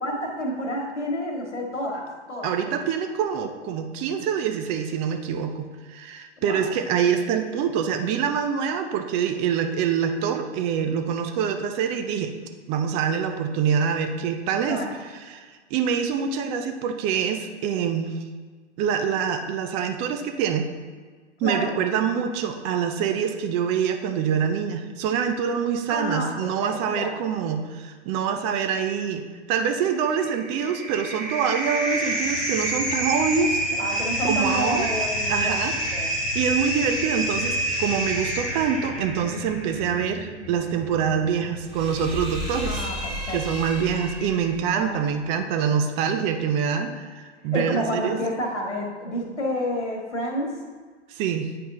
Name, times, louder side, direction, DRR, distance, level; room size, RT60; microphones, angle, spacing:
voice 1, 0.0-2.8 6.4-6.7 14.7-14.9 21.4-21.8 25.9-27.2 33.8-35.6 35.9-36.2 42.7-43.4 44.7-45.0 47.5-50.6, equal, 85° left, -2 dB, 1.7 m, -29 dB
voice 2, 2.4-12.3 12.7-14.8 15.2-18.2 18.8-20.7 21.4-29.2 29.5-33.6 34.2-34.9 35.3-42.9 43.3-48.2 51.1-51.5, right 7 dB, 20° right, 6 dB, 0.4 m, -25 dB
sound 1, 30.1-44.7, right 1 dB, ahead, 1.9 m, -29 dB
9.2 x 4.5 x 3.7 m, 1.5 s
hypercardioid pair, 120°, 35 cm